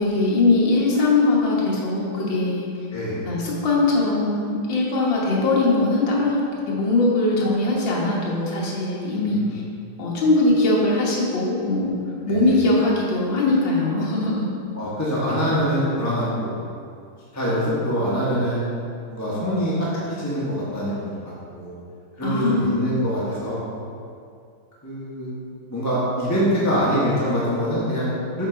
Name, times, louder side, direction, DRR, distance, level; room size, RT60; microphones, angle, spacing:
voice 1, 0.0-2.9 3.3-6.4 6.7-9.6 10.0-12.0 12.3-14.5 22.2-23.1, left 2 dB, 65° left, -5 dB, 2.0 m, -21 dB
voice 2, 2.9-3.2 9.2-9.6 12.3-12.5 14.7-16.6 17.3-18.7 19.1-21.1 21.5-21.7 22.1-23.6 24.8-25.4 25.7-28.5, equal, 10° left, -8 dB, 1.0 m, -24 dB
7.4 x 4.1 x 5.0 m, 2.4 s
omnidirectional pair, 2.3 m